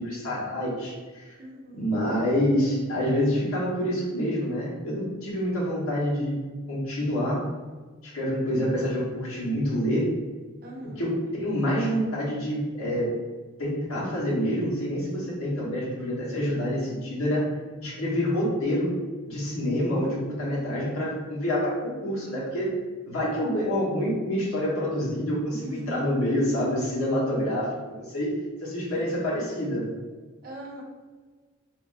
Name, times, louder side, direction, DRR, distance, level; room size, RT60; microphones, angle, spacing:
voice 1, 0.0-1.3 1.7-6.4 6.7-7.5 8.0-10.1 11.0-13.1 13.6-17.5 17.8-19.0 19.3-22.7 23.1-28.3 28.6-29.9, equal, 90° left, -6 dB, 1.3 m, -27 dB
voice 2, 1.4-1.8 10.6-11.1 20.5-20.8 25.5-26.1 28.9-29.2 30.4-30.8, right 1 dB, 45° right, -3 dB, 0.7 m, -40 dB
3.5 x 2.7 x 2.6 m, 1.4 s
head